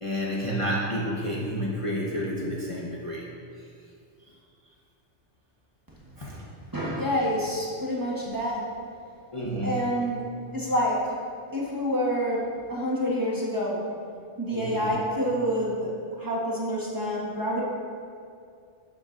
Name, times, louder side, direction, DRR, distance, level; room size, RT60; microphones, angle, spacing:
voice 1, 0.0-3.2 6.2-6.4 9.3-9.9 14.5-14.9, equal, 30° left, -5 dB, 1.0 m, -30 dB
voice 2, 6.7-8.7 9.6-10.2 10.5-11.2 11.5-13.9 14.4-17.6, equal, 20° right, -6 dB, 1.3 m, -27 dB
11.5 x 7.5 x 2.6 m, 2.3 s
omnidirectional pair, 1.2 m